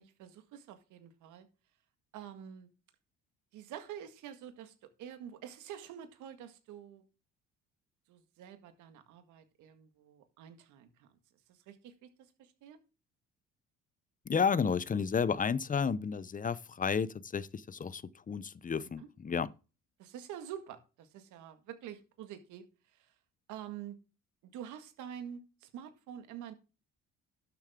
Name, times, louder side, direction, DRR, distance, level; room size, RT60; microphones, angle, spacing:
voice 1, 0.0-1.5 2.1-2.7 3.5-7.0 8.1-11.1 11.5-12.8 19.0-19.1 20.0-23.1 23.5-24.0 24.5-26.5, right 9 dB, 75° right, 1.8 m, -47 dB
voice 2, 14.3-19.5, left 6 dB, 25° left, 0.7 m, -32 dB
12.0 x 7.2 x 3.6 m
supercardioid pair, 75°, 30 cm